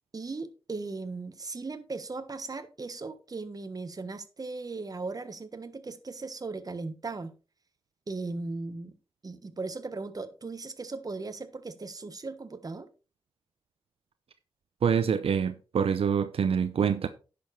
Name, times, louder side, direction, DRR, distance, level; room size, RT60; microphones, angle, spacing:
voice 1, 0.1-7.3 8.1-9.0 9.2-12.9, right 3 dB, 40° right, 1.4 m, -37 dB
voice 2, 14.8-17.1, right 7 dB, 75° right, 0.7 m, -26 dB
10.0 x 7.0 x 4.2 m
cardioid pair, 70°, 10 cm